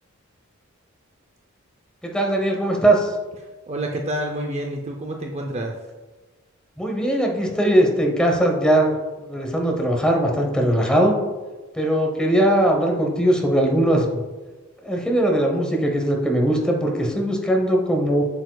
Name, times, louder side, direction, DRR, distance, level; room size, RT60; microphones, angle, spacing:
voice 1, 2.0-3.1 6.8-11.2 11.7-14.2 14.8-18.2, right 1 dB, 5° left, 1 dB, 0.9 m, -20 dB
voice 2, 3.7-5.8, right 1 dB, 30° right, 2 dB, 0.5 m, -28 dB
7.8 x 7.0 x 2.3 m, 1.2 s
head